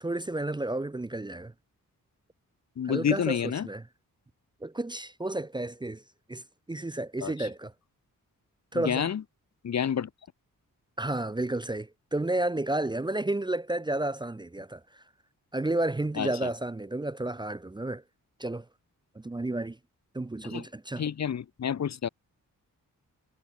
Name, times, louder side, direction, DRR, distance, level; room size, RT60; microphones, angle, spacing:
voice 1, 0.0-1.5 2.8-3.4 3.6-3.8 4.6-6.0 6.3-7.7 8.7-9.1 11.0-15.0 15.5-18.0 18.4-18.7 19.1-19.8 20.1-21.1, right 2 dB, 15° right, 0.7 m, -31 dB
voice 2, 2.8-3.7 7.2-7.5 8.7-9.2 9.6-10.1 16.2-16.3 20.5-20.6 21.0-22.1, left 8 dB, 50° left, 1.0 m, -29 dB
wide cardioid pair, 175°, 34 cm